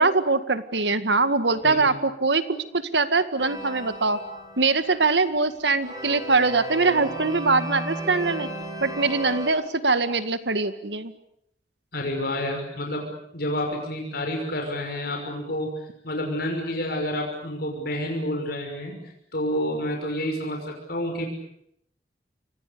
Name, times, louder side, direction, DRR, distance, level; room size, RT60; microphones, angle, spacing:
voice 1, 0.0-4.2 4.6-8.5 8.8-11.1, right 3 dB, 80° right, 11 dB, 2.0 m, -23 dB
sound 1, 3.4-5.4 5.8-9.5, right 2 dB, 25° right, 5.5 m, -35 dB
voice 2, 11.9-18.9 19.3-21.3, left 1 dB, 60° left, 2 dB, 6.1 m, -29 dB
30.0 x 25.0 x 6.9 m, 0.73 s
head